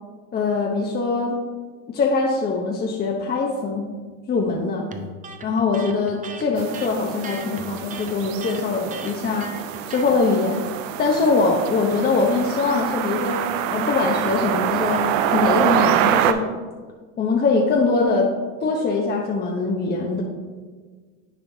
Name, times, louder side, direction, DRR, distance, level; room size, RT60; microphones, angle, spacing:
voice 1, 0.3-1.4 1.9-3.9 4.3-4.9 5.4-9.5 9.9-10.7 11.0-16.4 17.2-18.3 18.6-20.2, left 3 dB, 25° left, 0 dB, 0.7 m, -22 dB
Electric guitar, 4.9-10.2, right 4 dB, 20° right, 0.5 m, -38 dB
sound 1, 6.6-16.3, right 10 dB, 80° right, 0.5 m, -25 dB
10.0 x 4.4 x 2.7 m, 1.5 s
supercardioid pair, 100°, 38 cm